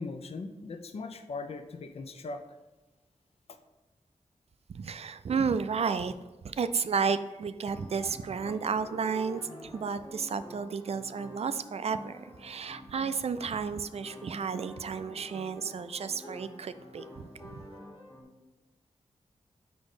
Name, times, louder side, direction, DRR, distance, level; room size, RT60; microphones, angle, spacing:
voice 1, 0.0-2.4, left 3 dB, 55° left, 7 dB, 0.5 m, -39 dB
voice 2, 4.7-6.1 6.4-17.6, right 5 dB, 55° right, 12 dB, 0.4 m, -32 dB
sound 1, 7.7-18.2, left 1 dB, 35° left, 1.5 m, -48 dB
5.1 x 4.1 x 4.9 m, 1.1 s
cardioid pair, 60°, 12 cm